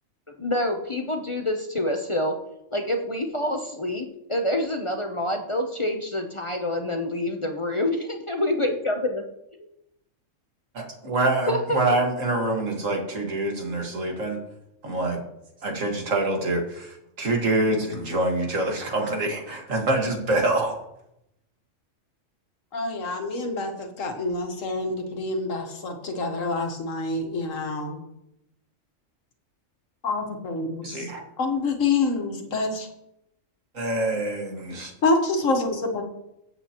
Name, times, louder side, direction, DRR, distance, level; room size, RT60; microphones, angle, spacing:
voice 1, 0.4-2.4 2.7-9.2 11.5-12.0, left 1 dB, 30° left, 4 dB, 0.7 m, -27 dB
voice 2, 10.7-14.4 14.8-15.2 15.6-20.8 30.8-31.2 33.7-34.9, right 2 dB, 75° right, 2 dB, 2.1 m, -25 dB
voice 3, 22.7-28.0 30.0-31.1 31.4-32.9 35.0-36.0, left 3 dB, 80° left, 4 dB, 1.8 m, -27 dB
15.5 x 8.0 x 3.0 m, 0.84 s
omnidirectional pair, 1.3 m